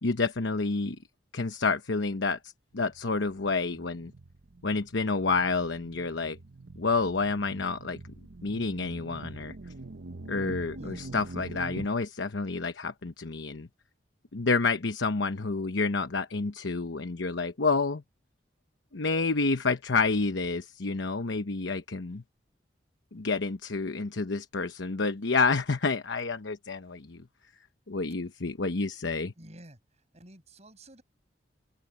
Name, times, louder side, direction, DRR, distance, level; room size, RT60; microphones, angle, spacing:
voice 1, 0.0-1.0 1.3-4.1 4.6-6.4 6.7-8.1 8.4-9.5 10.3-13.7 14.3-18.0 18.9-22.2 23.1-27.2 27.9-29.3, left 4 dB, 85° left, 1.0 m, -29 dB
sound 1, 2.9-11.9, right 2 dB, 75° right, 0.9 m, -45 dB
voice 2, 29.4-29.8 30.1-31.0, right 1 dB, 35° right, 7.9 m, -49 dB
open air
head